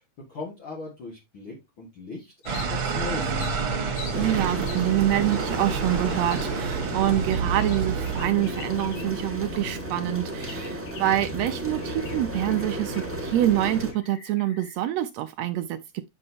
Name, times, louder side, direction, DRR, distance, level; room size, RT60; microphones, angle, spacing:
voice 1, 0.3-3.6, left 4 dB, 45° left, 2.4 m, -39 dB
sound 1, 2.4-3.0 3.4-4.2 4.7-4.9 5.3-5.5 6.3-6.5 6.8-9.3 9.6-9.7 10.4-11.3 11.8-13.2 13.5-13.6 13.9-14.9, left 5 dB, 85° left, 3.2 m, -45 dB
sound 2, 2.5-8.3, right 5 dB, 50° right, 1.9 m, -29 dB
sound 3, 4.1-13.9, right 1 dB, 5° right, 1.0 m, -33 dB
voice 2, 4.2-15.8, right 13 dB, 85° right, 1.5 m, -26 dB
8.7 x 6.3 x 2.8 m
omnidirectional pair, 3.5 m